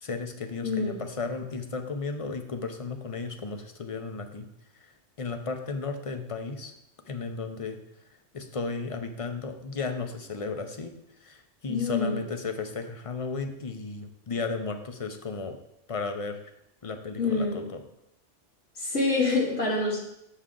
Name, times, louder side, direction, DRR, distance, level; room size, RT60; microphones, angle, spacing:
voice 1, 0.0-4.5 4.8-4.9 5.2-6.7 7.1-7.8 8.3-10.9 11.2-15.6 15.9-16.4 16.8-17.8, left 4 dB, 35° left, 6 dB, 0.6 m, -34 dB
voice 2, 0.6-1.0 11.7-12.2 17.2-17.6 18.8-20.0, left 3 dB, 90° left, -3 dB, 2.2 m, -26 dB
7.0 x 6.5 x 3.8 m, 0.80 s
omnidirectional pair, 1.2 m